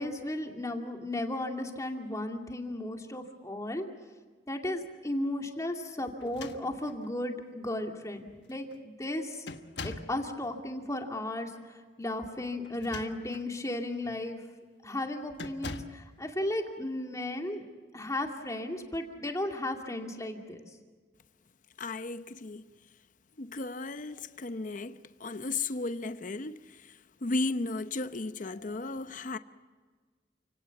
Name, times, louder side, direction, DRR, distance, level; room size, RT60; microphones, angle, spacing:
voice 1, 0.0-3.8 4.5-9.5 9.8-14.4 14.8-17.6 17.9-20.6 24.3-24.4, left 1 dB, 20° left, 2.5 m, -35 dB
sound 1, 6.2-7.1 8.0-8.1 8.4-8.8 9.5-10.2 12.6-13.5 14.0-14.3 15.4-16.1, left 3 dB, 70° left, 1.3 m, -43 dB
voice 2, 21.8-22.7 23.4-29.4, left 3 dB, 45° left, 0.8 m, -35 dB
29.5 x 18.0 x 7.2 m
head